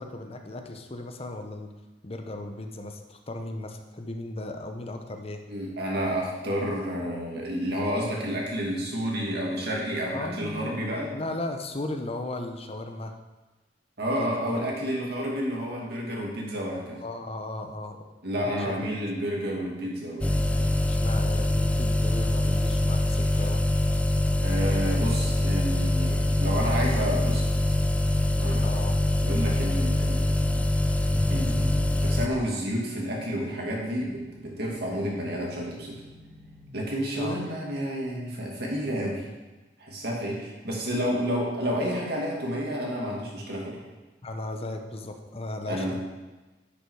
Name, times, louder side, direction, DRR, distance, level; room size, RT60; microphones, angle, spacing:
voice 1, 0.0-1.7 2.0-5.4 10.1-10.8 11.1-13.1 14.2-14.4 17.0-18.1 18.6-18.9 20.9-23.7 28.6-29.0 37.1-37.5 44.2-46.0, left 2 dB, 35° left, 5 dB, 0.8 m, -36 dB
voice 2, 5.5-11.1 14.0-17.0 18.2-20.8 24.4-27.8 28.3-28.7 29.2-30.6 31.3-36.0 36.7-39.2 39.8-43.8 45.7-45.9, equal, 65° right, -2 dB, 2.2 m, -30 dB
sound 1, 20.0-36.7, equal, 35° right, 2.1 m, -56 dB
sound 2, 20.2-32.3, left 1 dB, 5° left, 0.4 m, -24 dB
9.9 x 5.5 x 4.8 m, 1.2 s
head